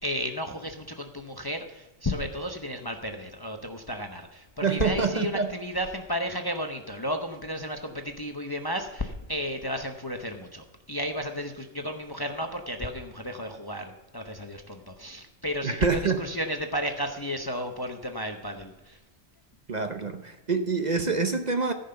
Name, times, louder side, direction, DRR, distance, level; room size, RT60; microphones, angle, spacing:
voice 1, 0.0-19.0, equal, 25° left, 5 dB, 0.7 m, -33 dB
voice 2, 4.6-5.5 15.6-16.2 19.7-21.7, right 4 dB, 45° right, 7 dB, 0.8 m, -26 dB
14.0 x 5.5 x 6.7 m, 1.1 s
omnidirectional pair, 1.2 m